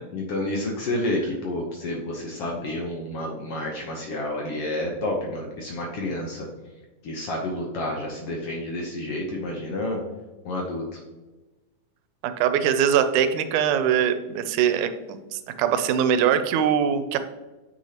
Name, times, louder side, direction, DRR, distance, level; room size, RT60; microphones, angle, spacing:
voice 1, 0.1-6.5 7.0-10.0 10.4-10.8, left 1 dB, 70° left, 0 dB, 1.5 m, -29 dB
voice 2, 12.2-17.2, right 8 dB, 85° right, 10 dB, 2.0 m, -22 dB
8.0 x 6.0 x 2.9 m, 1.1 s
omnidirectional pair, 3.5 m